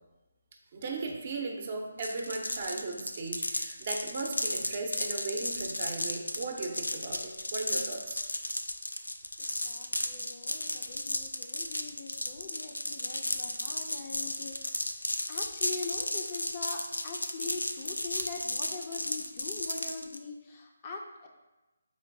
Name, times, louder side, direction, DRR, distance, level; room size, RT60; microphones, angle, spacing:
voice 1, 0.7-8.2, right 3 dB, 40° right, 2 dB, 0.6 m, -37 dB
sound 1, 2.0-20.2, left 1 dB, 90° left, 0.4 m, -34 dB
voice 2, 9.4-14.9 15.3-21.3, left 4 dB, 30° left, 1 dB, 0.5 m, -42 dB
4.4 x 3.7 x 2.6 m, 1.1 s
figure-of-eight pair, 150°, 0 cm